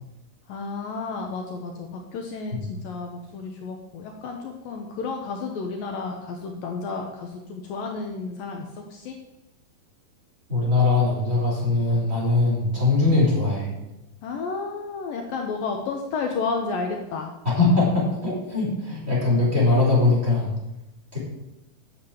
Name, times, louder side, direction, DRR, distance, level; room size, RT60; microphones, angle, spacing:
voice 1, 0.5-9.2 14.2-17.3, left 4 dB, 70° left, 3 dB, 2.5 m, -32 dB
voice 2, 10.5-13.7 17.4-20.5 21.1-21.2, left 3 dB, 15° right, -5 dB, 4.7 m, -21 dB
9.7 x 7.3 x 8.4 m, 0.92 s
omnidirectional pair, 4.6 m